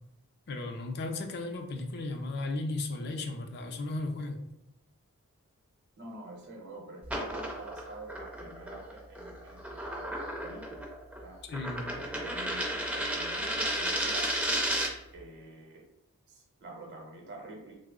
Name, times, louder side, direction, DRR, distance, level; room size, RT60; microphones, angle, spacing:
voice 1, 0.5-4.4 11.5-11.9, left 2 dB, 45° left, 4 dB, 0.4 m, -35 dB
voice 2, 6.0-10.9 11.2-11.4 12.0-12.7 12.9-14.3 15.1-15.8 16.3-17.8, right 2 dB, 50° right, -1 dB, 0.8 m, -47 dB
sound 1, 7.0-15.1, right 1 dB, 5° right, 0.5 m, -34 dB
3.2 x 2.0 x 3.6 m, 0.86 s
head